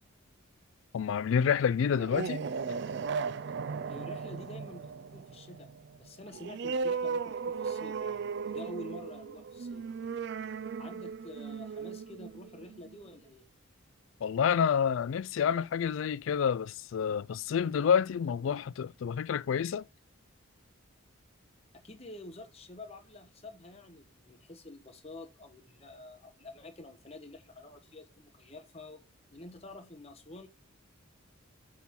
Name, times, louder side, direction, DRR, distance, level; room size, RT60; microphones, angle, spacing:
voice 1, 0.9-2.4 14.2-19.8, left 7 dB, 65° left, 0.3 m, -28 dB
sound 1, 1.8-13.1, right 5 dB, 50° right, 0.3 m, -36 dB
voice 2, 3.9-5.7 6.0-9.8 10.8-13.5 21.7-29.0 29.3-30.5, left 1 dB, 30° left, 1.0 m, -48 dB
8.2 x 3.6 x 6.1 m
head